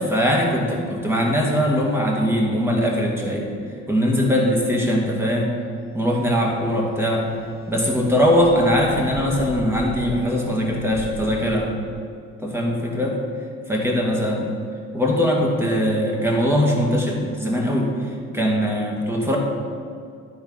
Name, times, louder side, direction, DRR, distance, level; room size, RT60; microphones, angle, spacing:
voice 1, 0.1-3.5 3.9-5.5 5.9-7.2 7.7-11.7 12.4-13.2 13.7-14.5 14.9-19.4, equal, 10° right, -1 dB, 1.9 m, -21 dB
sound 1, 5.8-12.1, left 1 dB, 30° left, 2.2 m, -39 dB
11.0 x 4.3 x 5.6 m, 2.2 s
cardioid pair, 90°, 30 cm